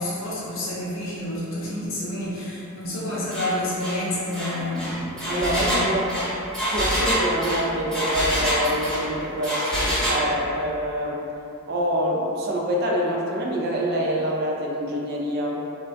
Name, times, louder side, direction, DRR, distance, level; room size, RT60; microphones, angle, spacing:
voice 1, 0.0-5.9, left 1 dB, 65° left, -7 dB, 0.5 m, -29 dB
Engine, 3.3-3.5 3.8-4.0 4.3-9.1 9.4-10.2, equal, 5° left, 0.7 m, -25 dB
voice 2, 5.3-6.0 6.7-11.2 11.7-15.6, equal, 50° right, -2 dB, 0.4 m, -26 dB
3.1 x 2.2 x 2.5 m, 2.9 s
head